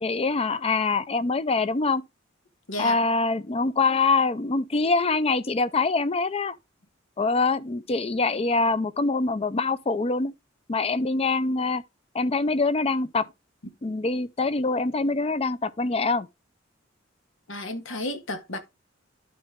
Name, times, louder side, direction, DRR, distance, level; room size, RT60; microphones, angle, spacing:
voice 1, 0.0-2.0 2.8-6.6 7.2-10.3 10.7-11.8 12.1-13.3 13.8-16.3, left 3 dB, 30° left, 0.5 m, -24 dB
voice 2, 17.5-18.6, left 1 dB, 85° left, 1.6 m, -32 dB
12.0 x 4.2 x 3.5 m
head